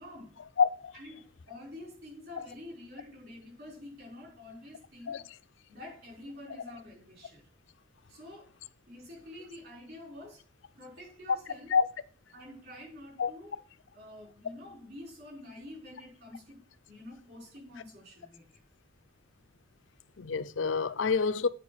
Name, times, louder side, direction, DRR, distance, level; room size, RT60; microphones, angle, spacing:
voice 1, 0.0-0.4 0.9-5.2 5.7-7.5 8.1-8.5 8.9-10.4 10.8-11.7 12.3-13.6 13.9-16.6 16.9-18.6, left 1 dB, 50° right, 5.5 m, -48 dB
voice 2, 0.6-0.9 5.1-5.2 11.7-11.9 13.2-13.3 20.2-21.5, left 5 dB, 75° left, 0.5 m, -27 dB
9.0 x 5.1 x 6.3 m
head